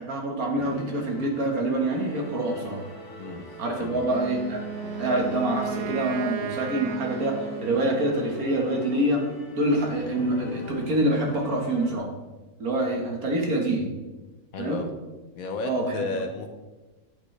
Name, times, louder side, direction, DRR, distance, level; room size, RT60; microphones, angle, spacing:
voice 1, 0.0-2.8 3.6-4.6 5.0-7.4 7.6-9.2 9.6-12.1 12.6-13.9 14.6-14.8 15.7-15.9, right 1 dB, 70° right, 1 dB, 2.0 m, -26 dB
sound 1, 0.6-11.9, equal, 15° left, 1.1 m, -41 dB
voice 2, 3.2-4.1 14.5-15.0 15.3-16.5, left 3 dB, 70° left, 6 dB, 1.4 m, -33 dB
Wind instrument woodwind instrument, 4.0-8.2, right 7 dB, 85° right, 1.1 m, -35 dB
9.5 x 8.4 x 3.3 m, 1.2 s
omnidirectional pair, 1.6 m